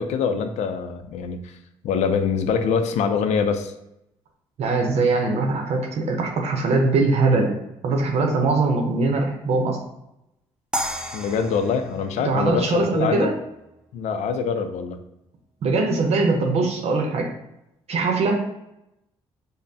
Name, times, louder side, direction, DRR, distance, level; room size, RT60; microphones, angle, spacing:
voice 1, 0.0-1.6 1.8-3.7 11.1-13.3 13.9-15.0, left 6 dB, 75° left, 7 dB, 0.4 m, -24 dB
voice 2, 4.6-7.5 7.8-9.8 12.2-13.3 15.6-17.3 17.9-18.4, right 3 dB, 65° right, 1 dB, 0.7 m, -21 dB
sound 1, 10.7-13.8, equal, 5° right, 0.5 m, -33 dB
5.1 x 2.1 x 2.7 m, 0.85 s
supercardioid pair, 65°, 12 cm